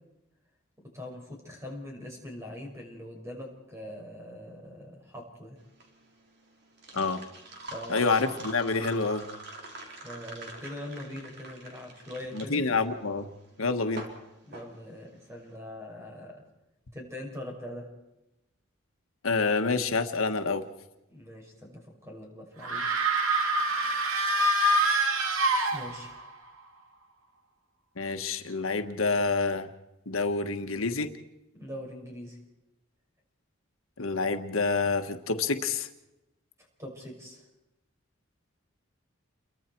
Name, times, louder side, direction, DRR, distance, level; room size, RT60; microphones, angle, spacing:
voice 1, 0.9-5.6 7.7-8.3 9.9-12.6 14.4-16.4 16.9-17.9 21.1-23.0 25.7-26.3 31.5-32.4 36.8-37.4, left 1 dB, 15° right, 1 dB, 5.9 m, -42 dB
sound 1, 5.6-15.5, right 1 dB, 50° right, 4.1 m, -45 dB
voice 2, 7.9-9.2 12.3-13.3 13.6-14.1 19.2-20.6 28.0-29.7 30.1-31.1 34.0-35.9, left 4 dB, 85° left, 7 dB, 1.4 m, -27 dB
sound 2, 22.6-26.3, right 2 dB, 90° right, 2.5 m, -26 dB
29.5 x 23.0 x 4.6 m, 0.96 s
head